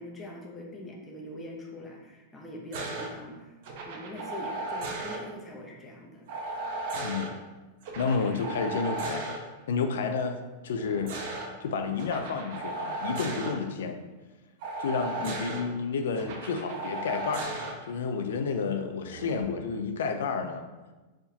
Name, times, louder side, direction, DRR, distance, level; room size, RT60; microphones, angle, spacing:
voice 1, 0.0-3.6 3.9-6.3, left 1 dB, 15° left, -1 dB, 0.8 m, -43 dB
sound 1, 2.7-3.1 3.6-5.2 6.3-7.3 7.8-9.4 10.7-11.5 12.0-13.5 14.6-15.6 16.2-17.7 19.0-19.4, right 2 dB, 60° right, 0.8 m, -35 dB
voice 2, 7.0-7.4 8.0-9.2 9.7-10.4 10.6-11.2 11.6-14.0 14.8-20.6, left 5 dB, 85° left, 6 dB, 0.4 m, -30 dB
4.5 x 3.6 x 2.8 m, 1.2 s
supercardioid pair, 145°, 0 cm